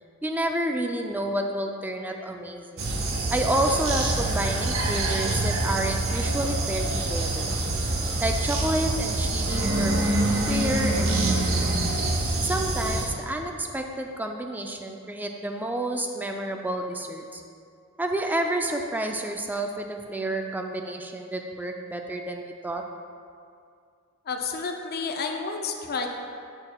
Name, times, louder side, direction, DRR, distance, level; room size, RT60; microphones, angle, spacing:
voice 1, 0.2-2.9 3.3-7.6 8.2-9.9 10.5-11.7 12.4-17.4 18.0-22.8, right 1 dB, 10° right, 3 dB, 0.3 m, -29 dB
sound 1, 2.8-13.1, right 2 dB, 65° right, 0.8 m, -26 dB
sound 2, 9.4-12.3, equal, 90° right, 1.2 m, -27 dB
voice 2, 24.3-26.1, left 4 dB, 45° left, 3 dB, 0.5 m, -30 dB
8.5 x 6.0 x 2.2 m, 2.3 s
head